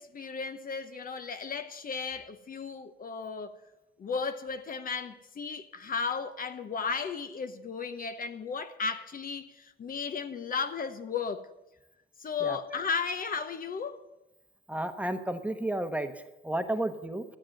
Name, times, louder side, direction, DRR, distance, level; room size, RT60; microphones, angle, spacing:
voice 1, 0.0-3.6 4.0-11.5 12.2-14.0, left 5 dB, 45° left, 0.9 m, -35 dB
voice 2, 14.7-16.1 16.4-17.2, right 1 dB, 5° right, 1.0 m, -32 dB
13.0 x 7.6 x 7.8 m
cardioid pair, 90°, 20 cm